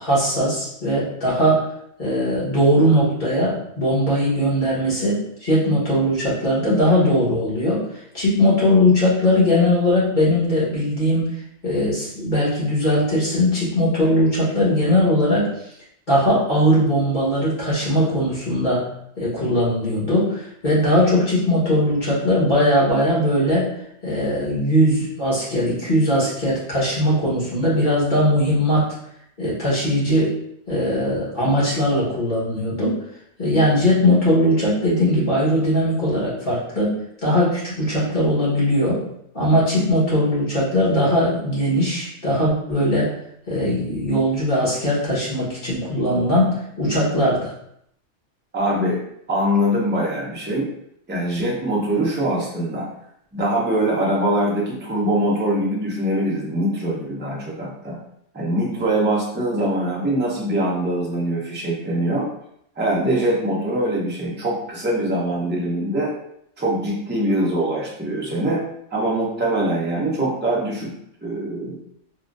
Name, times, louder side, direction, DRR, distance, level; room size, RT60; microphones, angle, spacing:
voice 1, 0.0-1.6 2.0-7.8 8.1-11.3 11.6-15.5 16.1-18.8 19.2-23.7 24.0-28.9 29.4-30.3 30.7-33.0 33.4-36.9 37.2-39.0 39.3-43.1 43.5-47.5, equal, 40° left, -8 dB, 1.4 m, -19 dB
voice 2, 48.5-49.0 49.3-50.7 51.1-52.9 53.3-58.0 58.3-62.3 62.8-66.1 66.6-68.6 68.9-70.9 71.2-71.8, right 1 dB, 15° right, -4 dB, 0.5 m, -23 dB
3.6 x 2.2 x 2.5 m, 0.73 s
omnidirectional pair, 1.3 m